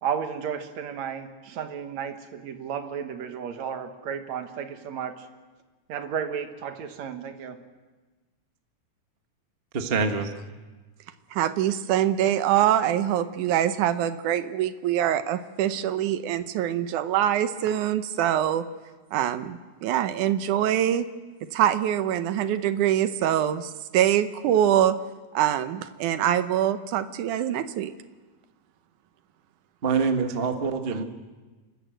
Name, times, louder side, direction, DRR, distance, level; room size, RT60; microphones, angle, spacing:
voice 1, 0.0-5.3 5.9-7.6, right 7 dB, 65° right, 7 dB, 2.6 m, -33 dB
voice 2, 9.7-10.3 29.8-31.0, right 5 dB, 40° right, 5 dB, 0.8 m, -25 dB
voice 3, 11.3-18.6 19.1-21.1 21.5-25.0 25.3-27.9, right 11 dB, 85° right, 11 dB, 2.3 m, -24 dB
29.5 x 13.5 x 7.8 m, 1.3 s
omnidirectional pair, 3.5 m